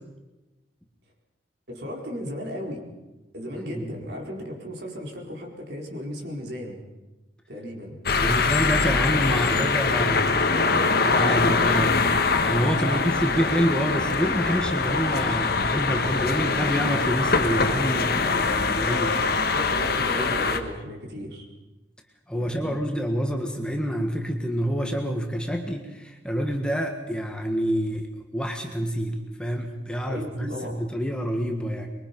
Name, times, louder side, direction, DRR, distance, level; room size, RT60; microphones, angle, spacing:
voice 1, 1.7-2.8 3.3-6.8 7.5-8.0 10.3-11.0 12.8-13.1 16.0-16.7 19.1-21.5 22.3-22.8 30.1-30.8, equal, 65° right, 0 dB, 4.5 m, -35 dB
sound 1, 8.1-20.6, left 4 dB, 55° left, 1.5 m, -23 dB
voice 2, 8.2-10.6 11.0-19.2 22.3-28.1 28.3-31.9, equal, 5° left, 3 dB, 1.7 m, -27 dB
24.5 x 22.5 x 5.4 m, 1.1 s
head